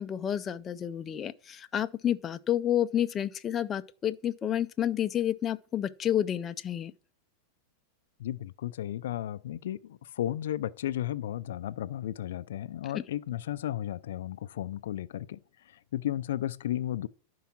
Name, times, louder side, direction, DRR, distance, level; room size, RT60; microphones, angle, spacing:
voice 1, 0.0-6.9 12.9-13.0, left 10 dB, 25° left, 0.5 m, -30 dB
voice 2, 8.2-15.4 15.7-17.1, left 12 dB, 80° left, 0.4 m, -34 dB
11.5 x 4.7 x 5.9 m
supercardioid pair, 140°, 0 cm